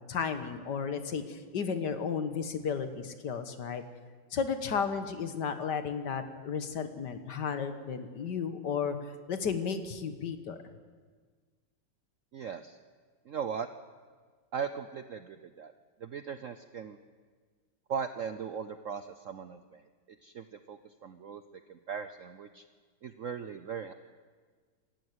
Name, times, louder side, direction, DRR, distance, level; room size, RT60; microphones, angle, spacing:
voice 1, 0.0-3.8 4.3-9.0 9.3-10.6, left 6 dB, 60° left, 9 dB, 1.8 m, -33 dB
voice 2, 12.3-12.8 13.3-13.7 14.5-15.7 16.0-17.0 17.9-19.8 20.2-22.6 23.0-23.9, right 7 dB, 65° right, 10 dB, 0.8 m, -38 dB
27.0 x 13.5 x 8.1 m, 1.5 s
omnidirectional pair, 2.2 m